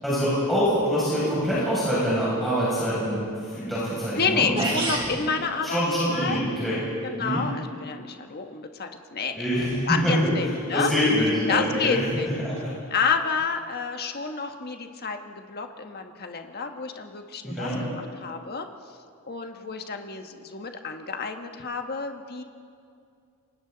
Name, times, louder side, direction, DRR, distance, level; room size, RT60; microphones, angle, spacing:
voice 1, 0.0-4.6 5.2-5.3 5.6-6.8 7.2-7.4 9.3-12.0 12.4-12.5 17.4-17.8, equal, ahead, -10 dB, 6.7 m, -25 dB
voice 2, 4.2-5.8 6.1-6.4 7.0-10.9 11.5-12.3 12.9-18.7 19.2-22.4, left 5 dB, 45° left, 5 dB, 1.4 m, -29 dB
sound 1, 4.6-5.1, right 2 dB, 25° right, 3.3 m, -27 dB
28.5 x 24.5 x 4.0 m, 2.4 s
head